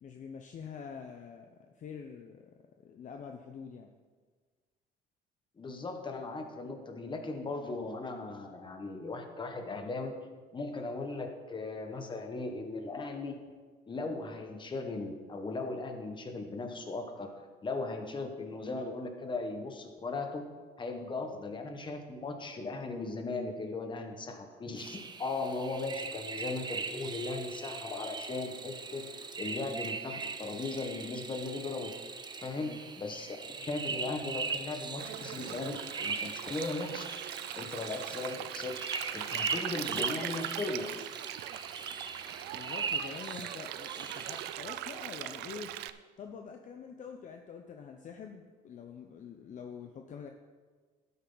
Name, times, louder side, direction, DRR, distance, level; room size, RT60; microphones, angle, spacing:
voice 1, 0.0-2.5 2.8-3.9 32.6-32.8 42.5-45.7 46.2-50.3, left 6 dB, 50° left, 4 dB, 0.8 m, -46 dB
voice 2, 5.6-10.1 10.5-13.4 13.9-17.3 17.6-20.5 20.8-29.1 29.4-31.9 32.4-37.1 37.5-38.8 39.1-40.9, left 3 dB, 30° left, 5 dB, 1.5 m, -38 dB
sound 1, 24.8-44.5, right 4 dB, 25° right, 0.8 m, -40 dB
Stream, 35.0-45.9, right 13 dB, 85° right, 0.5 m, -41 dB
12.0 x 9.4 x 4.0 m, 1.5 s
cardioid pair, 110°, 17 cm